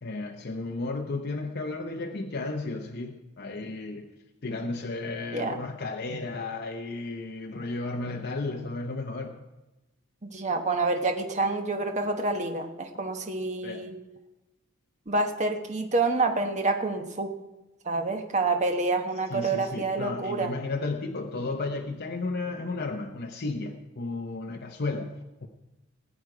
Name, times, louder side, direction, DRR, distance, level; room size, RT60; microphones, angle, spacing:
voice 1, 0.0-4.1 4.4-9.4 13.6-13.9 19.3-25.2 25.4-25.5, left 3 dB, 50° left, 3 dB, 0.7 m, -33 dB
voice 2, 10.2-14.0 15.1-17.4 17.8-20.5, right 3 dB, 35° right, 5 dB, 1.1 m, -28 dB
19.0 x 7.9 x 4.9 m, 1.0 s
head